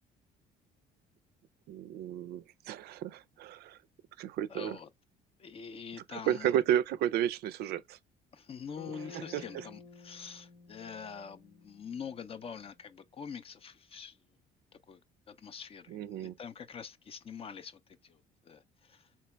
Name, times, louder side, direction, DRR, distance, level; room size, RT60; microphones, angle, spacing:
voice 1, 1.7-3.8 4.2-4.8 6.1-8.0 9.1-9.7 15.9-16.3, right 11 dB, 70° right, 0.4 m, -32 dB
voice 2, 4.5-4.9 5.4-6.5 8.3-14.2 14.9-15.0 15.3-19.1, left 6 dB, 35° left, 0.4 m, -45 dB
Bass guitar, 8.8-12.8, left 4 dB, 90° left, 1.3 m, -53 dB
3.3 x 3.0 x 3.2 m
cardioid pair, 110°, 17 cm